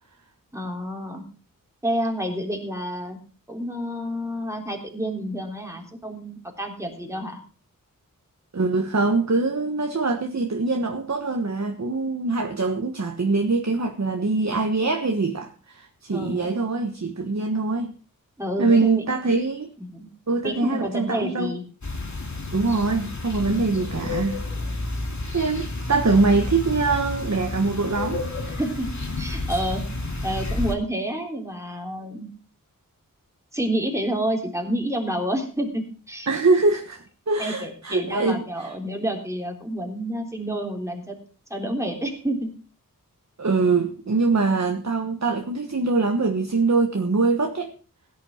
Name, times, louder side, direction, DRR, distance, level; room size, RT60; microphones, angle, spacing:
voice 1, 0.5-1.2 1.8-3.2 3.5-7.4 16.1-16.6 18.4-19.1 19.8-20.1 20.4-21.6 28.5-28.9 29.2-29.8 30.2-32.3 33.5-36.3 37.4-41.2 41.5-42.5, right 1 dB, 10° right, 3.5 m, -29 dB
voice 2, 8.5-17.9 18.6-19.7 20.3-21.5 22.5-24.4 25.3-28.2 36.3-38.7 43.4-47.7, right 3 dB, 50° right, 1.4 m, -23 dB
sound 1, 21.8-30.7, left 2 dB, 55° left, 3.0 m, -30 dB
16.5 x 10.0 x 4.4 m
wide cardioid pair, 75°, 34 cm